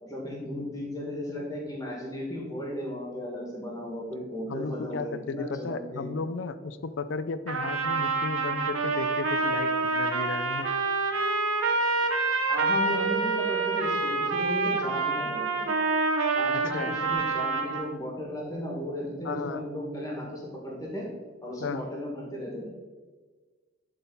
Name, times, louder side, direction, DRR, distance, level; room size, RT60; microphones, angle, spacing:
voice 1, 0.0-6.2 12.5-15.7 16.3-21.1 21.4-22.7, equal, 15° left, -3 dB, 1.9 m, -35 dB
voice 2, 4.5-10.7 16.5-17.0 19.2-19.7 21.6-21.9, left 4 dB, 60° left, 12 dB, 0.4 m, -34 dB
Trumpet, 7.5-17.9, right 3 dB, 85° right, 0.9 m, -27 dB
11.5 x 3.9 x 4.1 m, 1.4 s
head